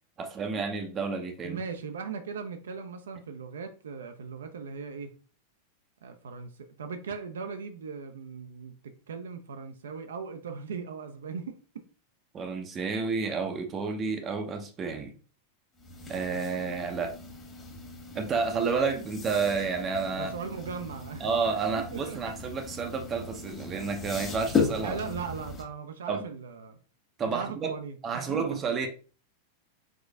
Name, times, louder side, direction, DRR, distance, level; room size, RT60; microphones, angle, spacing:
voice 1, 0.2-1.6 12.3-15.1 16.1-17.2 18.1-20.3 21.2-25.0 26.1-26.2 27.2-27.7 28.0-28.9, right 5 dB, 25° right, 0.6 m, -30 dB
voice 2, 1.4-5.1 6.0-11.9 20.1-21.3 21.8-22.3 24.8-26.8 27.2-28.6, right 5 dB, 65° right, 0.5 m, -38 dB
sound 1, 15.8-25.6, left 5 dB, 20° left, 1.4 m, -36 dB
4.8 x 3.9 x 2.3 m
figure-of-eight pair, 90°, 0 cm